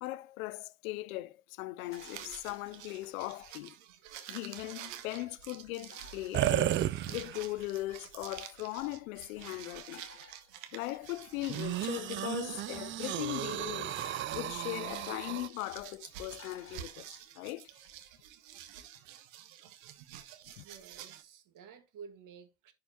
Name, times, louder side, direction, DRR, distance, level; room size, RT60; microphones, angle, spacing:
voice 1, 0.0-3.8 4.3-6.8 7.1-10.1 10.7-13.9 14.3-17.7 20.6-20.7, left 18 dB, 80° left, 0.6 m, -39 dB
sound 1, 1.8-21.2, right 11 dB, 75° right, 1.3 m, -49 dB
sound 2, 1.9-3.2 3.8-3.9 4.1-4.7 5.9-7.5 9.9-11.0 11.9-12.2 13.9-15.1 16.4-17.2 17.6-18.0, left 6 dB, 30° left, 4.3 m, -56 dB
sound 3, 6.3-7.6 8.2-8.3 11.5-15.5, right 12 dB, 30° right, 0.4 m, -33 dB
voice 2, 20.5-22.7, right 6 dB, 50° right, 1.7 m, -52 dB
11.0 x 4.7 x 2.8 m
hypercardioid pair, 85°, 41 cm